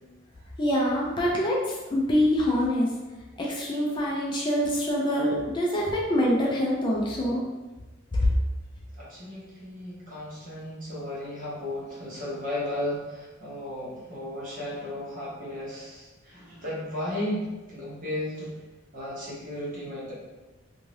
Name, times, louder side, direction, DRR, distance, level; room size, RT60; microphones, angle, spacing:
voice 1, 0.6-2.9 3.4-7.4 8.1-8.3, left 1 dB, 25° left, -3 dB, 0.4 m, -25 dB
voice 2, 9.0-18.5 18.9-20.1, left 1 dB, 45° right, -7 dB, 1.0 m, -34 dB
2.7 x 2.4 x 3.1 m, 1.2 s
head